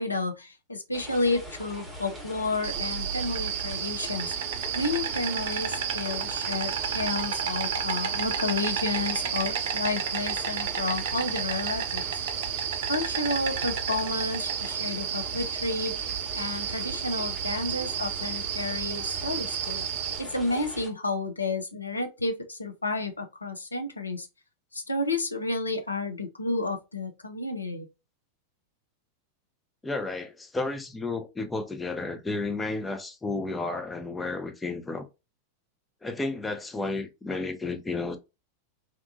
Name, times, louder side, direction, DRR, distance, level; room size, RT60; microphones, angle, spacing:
voice 1, 0.0-4.3 4.7-12.2 12.9-16.1 16.4-19.8 20.2-24.3 24.7-27.9, left 2 dB, 80° left, 0.5 m, -31 dB
sound 1, 0.9-20.9, right 1 dB, 5° right, 1.0 m, -42 dB
Insect, 2.6-20.2, right 8 dB, 55° right, 0.4 m, -31 dB
voice 2, 29.8-35.1 36.0-38.2, left 3 dB, 10° left, 0.5 m, -32 dB
2.8 x 2.2 x 2.5 m
figure-of-eight pair, 90°, 0 cm